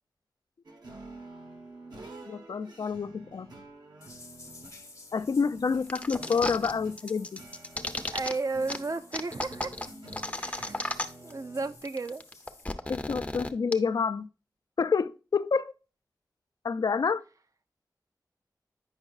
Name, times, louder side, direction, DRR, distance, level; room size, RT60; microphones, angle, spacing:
sound 1, 0.6-11.8, right 2 dB, 80° right, 1.1 m, -49 dB
voice 1, 2.3-3.5 5.1-7.4 12.9-14.3 14.8-15.7 16.6-17.2, left 5 dB, 70° left, 0.4 m, -28 dB
sound 2, 4.0-12.6, left 3 dB, 45° left, 0.8 m, -53 dB
sound 3, 5.9-6.7 7.0-8.3 8.7-8.8 9.1-11.3 11.6-11.7 11.9-13.7, left 2 dB, 20° left, 0.6 m, -34 dB
voice 2, 8.1-9.7 10.4-10.9 11.2-12.2, right 3 dB, 50° right, 0.5 m, -33 dB
8.7 x 5.3 x 2.3 m
wide cardioid pair, 75°, 7 cm